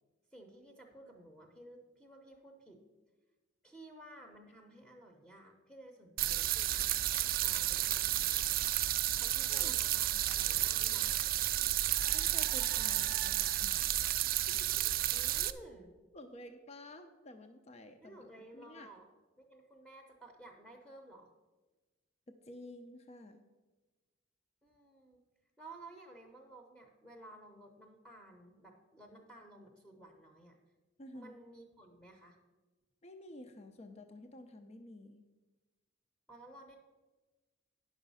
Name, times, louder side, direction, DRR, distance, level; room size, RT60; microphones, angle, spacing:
voice 1, 0.3-2.8 3.6-8.6 9.2-11.3 15.1-15.9 18.0-19.1 19.4-21.3 24.6-25.2 25.6-30.6 31.1-32.4 36.3-36.8, right 1 dB, 5° left, 1 dB, 0.8 m, -55 dB
sound 1, 6.2-15.5, right 14 dB, 45° right, 0.3 m, -32 dB
voice 2, 12.1-13.9 14.6-14.9 16.1-18.2 18.5-18.9 22.3-23.4 31.0-31.4 33.0-35.2, left 1 dB, 35° left, 7 dB, 0.6 m, -51 dB
9.6 x 6.2 x 5.5 m, 1.2 s
head